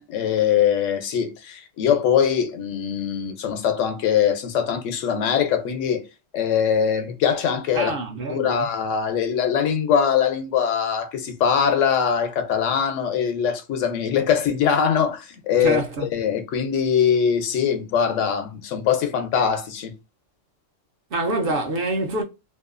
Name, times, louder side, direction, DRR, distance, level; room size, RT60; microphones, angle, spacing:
voice 1, 0.0-6.0 6.3-8.0 8.3-19.9, left 8 dB, 90° left, 1.0 m, -22 dB
voice 2, 7.7-8.7 15.6-16.1 21.1-22.2, right 2 dB, 60° right, 0.7 m, -26 dB
2.7 x 2.3 x 2.4 m
omnidirectional pair, 1.3 m